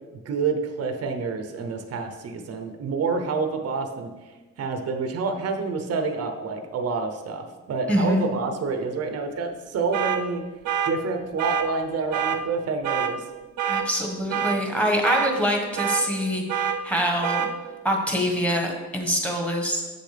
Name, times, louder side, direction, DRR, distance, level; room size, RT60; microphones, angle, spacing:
voice 1, 0.2-10.4 10.9-13.3, right 4 dB, 55° right, 6 dB, 0.8 m, -28 dB
voice 2, 7.9-8.2 13.6-17.5 17.8-19.8, equal, 5° left, 1 dB, 1.5 m, -25 dB
sound 1, 9.9-10.2 10.7-10.9 11.4-11.7 12.1-12.4 12.8-13.1 13.6-13.8 14.3-14.6 15.0-15.3 15.8-16.0 16.5-16.8 17.2-17.5, right 9 dB, 85° right, 0.7 m, -25 dB
7.4 x 6.6 x 3.4 m, 1.3 s
cardioid pair, 90°, 30 cm